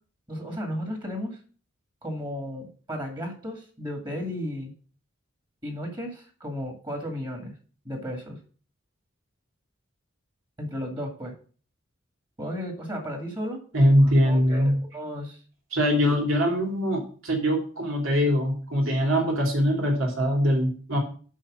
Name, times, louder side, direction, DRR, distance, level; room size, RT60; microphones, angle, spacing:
voice 1, 0.3-1.4 2.0-4.7 5.6-7.5 7.8-8.4 10.6-11.3 12.4-13.6 14.3-15.4, equal, 20° right, 2 dB, 2.1 m, -34 dB
voice 2, 13.7-14.8 15.7-21.0, equal, 80° right, 0 dB, 3.0 m, -22 dB
6.4 x 5.7 x 6.2 m, 0.41 s
head